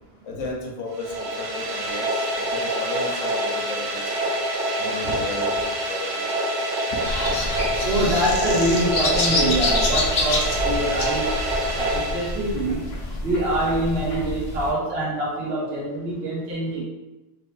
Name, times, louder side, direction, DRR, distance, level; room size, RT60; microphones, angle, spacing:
voice 1, 0.2-4.4 4.8-6.3, left 3 dB, 85° left, -1 dB, 1.1 m, -34 dB
sound 1, 0.9-12.8, right 1 dB, 85° right, 1.0 m, -26 dB
sound 2, 7.0-14.7, left 2 dB, 60° left, 1.1 m, -27 dB
voice 2, 7.8-11.3 11.7-12.8 13.2-16.8, right 1 dB, 55° right, -6 dB, 1.4 m, -24 dB
4.4 x 3.2 x 3.2 m, 1.0 s
omnidirectional pair, 1.3 m